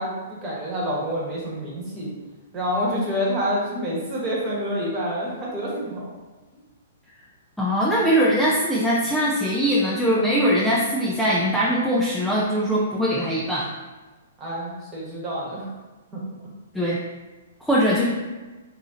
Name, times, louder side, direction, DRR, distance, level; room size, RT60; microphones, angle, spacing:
voice 1, 0.0-2.1 2.5-6.0 14.4-15.7 16.1-16.2, equal, 20° right, -5 dB, 1.2 m, -27 dB
voice 2, 7.6-13.7 16.7-17.0 17.6-18.1, equal, ahead, -7 dB, 0.4 m, -21 dB
3.0 x 2.7 x 3.6 m, 1.2 s
hypercardioid pair, 150°, 0 cm